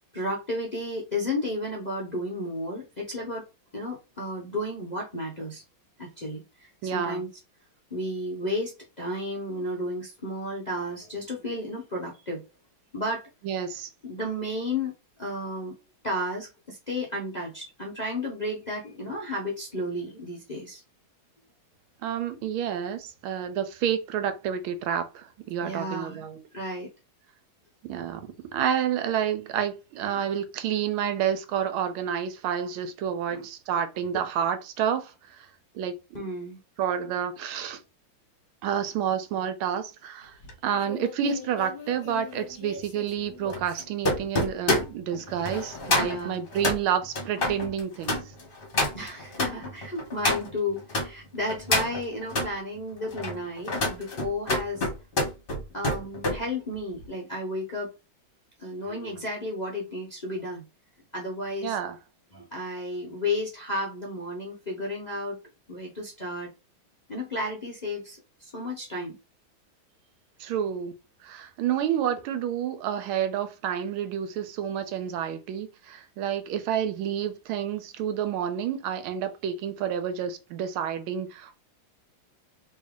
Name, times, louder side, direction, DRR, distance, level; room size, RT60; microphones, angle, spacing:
voice 1, 0.1-3.4 3.7-5.6 6.0-7.3 7.9-12.4 12.9-13.3 14.0-14.9 15.2-15.7 16.0-20.8 25.6-26.2 26.5-26.9 30.1-30.2 33.3-33.5 36.1-36.6 46.0-46.4 48.9-54.9 55.7-57.9 58.6-60.6 61.1-61.8 62.3-65.4 65.7-66.5 67.1-69.2, left 1 dB, 75° left, 0.4 m, -33 dB
voice 2, 6.8-7.2 13.4-13.9 22.0-26.4 27.8-35.5 35.7-36.3 36.8-37.8 38.6-40.4 40.6-48.2 61.6-62.0 70.4-70.9 71.2-81.5, right 8 dB, 85° right, 1.5 m, -29 dB
sound 1, 40.4-51.1 51.5-52.5 53.0-56.4 56.7-57.1, left 2 dB, 35° left, 0.9 m, -29 dB
3.2 x 2.8 x 3.6 m
omnidirectional pair, 2.3 m